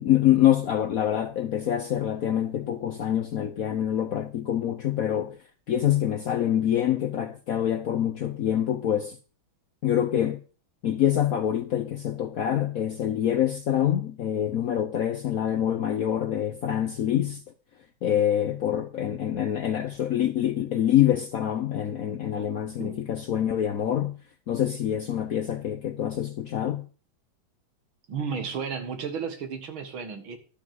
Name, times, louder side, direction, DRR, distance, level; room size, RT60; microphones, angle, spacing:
voice 1, 0.0-5.4 5.7-9.2 9.8-10.4 10.8-17.4 18.0-24.1 24.5-26.8, left 11 dB, 65° left, 0.9 m, -25 dB
voice 2, 28.1-30.4, right 6 dB, 75° right, 2.6 m, -33 dB
12.0 x 6.1 x 7.4 m
omnidirectional pair, 2.2 m